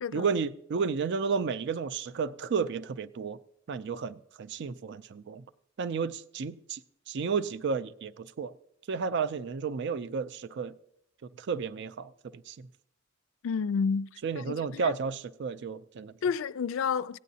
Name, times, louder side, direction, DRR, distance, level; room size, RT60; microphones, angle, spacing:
voice 1, 0.1-3.4 3.7-5.4 5.8-6.8 7.1-8.5 8.9-10.7 11.4-12.1 12.5-12.7 14.2-16.1, right 5 dB, 60° right, 0.4 m, -32 dB
voice 2, 13.4-14.1 14.3-14.9 16.2-17.2, left 6 dB, 75° left, 0.4 m, -30 dB
16.5 x 9.2 x 2.7 m
head